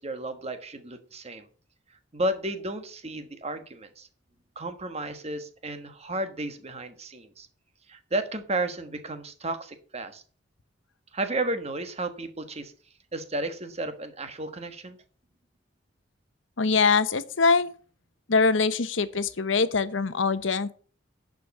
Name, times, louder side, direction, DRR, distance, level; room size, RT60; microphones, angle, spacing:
voice 1, 0.0-1.5 2.1-4.1 4.5-7.5 7.9-10.2 11.1-12.7 13.1-15.0, right 2 dB, 35° right, 1.3 m, -33 dB
voice 2, 16.6-17.7 18.3-20.7, left 4 dB, 80° left, 0.8 m, -23 dB
11.0 x 5.1 x 7.0 m
head